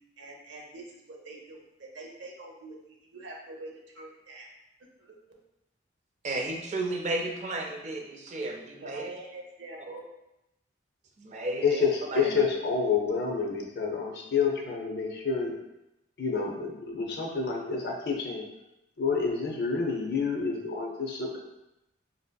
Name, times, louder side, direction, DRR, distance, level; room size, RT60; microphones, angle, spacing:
voice 1, 0.2-4.5 5.0-5.1 8.8-10.1, right 2 dB, 70° right, 0 dB, 0.7 m, -45 dB
voice 2, 6.2-9.1 11.2-11.8 12.1-12.3, right 2 dB, 35° right, 2 dB, 0.4 m, -33 dB
voice 3, 11.6-15.5 16.2-18.4 19.0-21.4, left 5 dB, 55° left, 1 dB, 0.6 m, -28 dB
4.2 x 2.7 x 2.2 m, 0.90 s
head